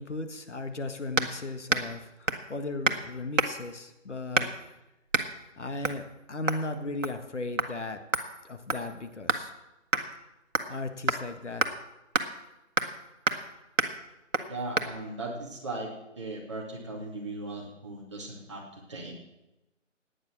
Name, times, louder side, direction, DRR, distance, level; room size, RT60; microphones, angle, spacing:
voice 1, 0.0-4.5 5.6-8.0 8.4-9.5 10.7-11.6, left 2 dB, 65° left, 8 dB, 1.7 m, -36 dB
sound 1, 1.2-1.4 1.7-2.0 2.3-2.5 2.8-3.0 3.4-3.7 4.3-4.7 5.1-5.3 5.8-6.0 6.5-6.7 7.0-7.3 7.6-7.7 8.1-9.5 9.9-10.1 10.6-10.8 11.1-11.2 11.6-11.7 12.1-12.3 12.8-13.0 13.3-13.5 13.8-14.0 14.3-14.5 14.8-14.9, right 3 dB, 75° right, 1.6 m, -28 dB
voice 2, 14.5-19.1, right 2 dB, 25° right, -2 dB, 2.4 m, -38 dB
17.0 x 10.0 x 6.2 m, 0.95 s
figure-of-eight pair, 170°, 38 cm